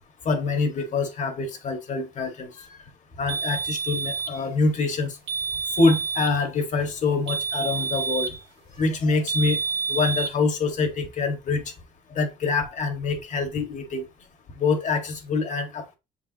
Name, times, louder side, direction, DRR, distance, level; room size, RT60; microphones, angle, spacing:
voice 1, 0.3-2.5 3.2-5.2 5.8-8.3 8.8-9.6 9.9-11.6 12.2-14.0 14.6-16.0, left 3 dB, 45° left, 1.7 m, -25 dB
sound 1, 3.3-4.4 5.3-6.4 7.3-8.4 9.3-10.3, right 5 dB, 80° right, 1.4 m, -28 dB
7.0 x 4.8 x 2.9 m
cardioid pair, 110°, 17 cm